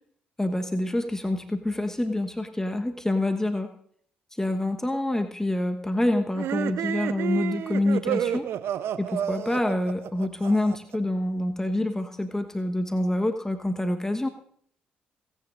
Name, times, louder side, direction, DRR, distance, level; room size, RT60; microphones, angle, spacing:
voice 1, 0.4-3.7 4.3-8.5 9.0-14.3, left 1 dB, 10° left, 6 dB, 1.2 m, -26 dB
sound 1, 6.3-11.0, right 10 dB, 65° right, 0.7 m, -30 dB
29.0 x 10.0 x 2.6 m, 0.63 s
hypercardioid pair, 45°, 5 cm